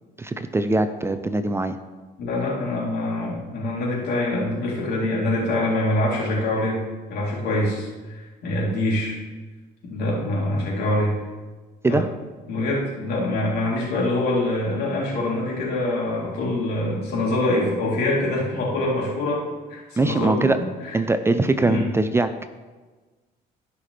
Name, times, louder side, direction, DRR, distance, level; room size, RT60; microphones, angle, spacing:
voice 1, 0.2-1.8 11.8-12.1 20.0-20.6 20.9-22.5, right 2 dB, 15° right, 9 dB, 0.5 m, -22 dB
voice 2, 2.2-6.8 7.1-9.2 9.8-11.1 11.9-12.0 12.5-19.4 19.7-21.0 21.6-21.9, left 1 dB, 75° left, -4 dB, 3.3 m, -25 dB
15.5 x 5.7 x 3.3 m, 1.3 s
cardioid pair, 110°, 17 cm